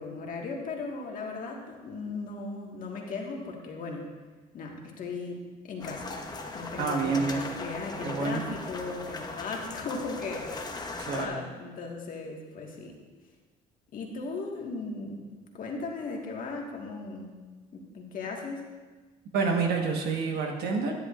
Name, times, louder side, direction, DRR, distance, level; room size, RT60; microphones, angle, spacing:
voice 1, 0.0-4.1 4.5-6.1 6.5-10.7 11.1-12.9 13.9-15.2 15.5-17.3 17.7-18.6, left 3 dB, 55° left, 0 dB, 1.6 m, -37 dB
sound 1, 5.8-11.3, left 3 dB, 25° left, 0.9 m, -39 dB
voice 2, 6.8-7.4 8.0-8.4 11.0-11.4 19.3-20.9, right 4 dB, 70° right, 1 dB, 1.4 m, -28 dB
10.5 x 10.0 x 2.5 m, 1.3 s
cardioid pair, 110°, 17 cm